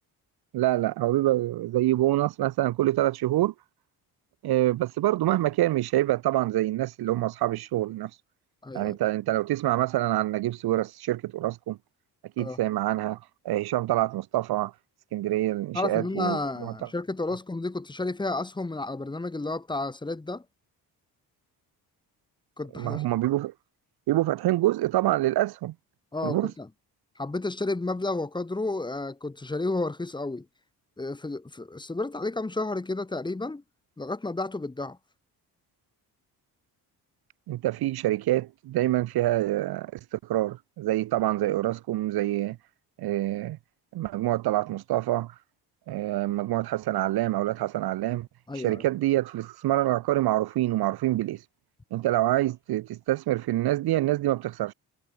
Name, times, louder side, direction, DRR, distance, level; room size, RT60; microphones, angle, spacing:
voice 1, 0.5-3.5 4.4-8.1 8.7-11.8 12.4-13.2 13.4-14.7 15.1-16.7 22.8-23.5 24.1-25.7 26.2-26.5 37.5-42.6 43.0-43.6 43.9-45.3 45.9-48.3 48.6-51.4 51.9-54.7, right 15 dB, 75° right, 1.1 m, -26 dB
voice 2, 8.6-9.0 12.4-12.6 15.7-20.5 22.6-23.0 26.1-26.7 27.2-30.5 31.0-33.6 34.0-35.0 48.5-48.8, left 2 dB, 10° left, 2.0 m, -31 dB
cardioid pair, 155°, 38 cm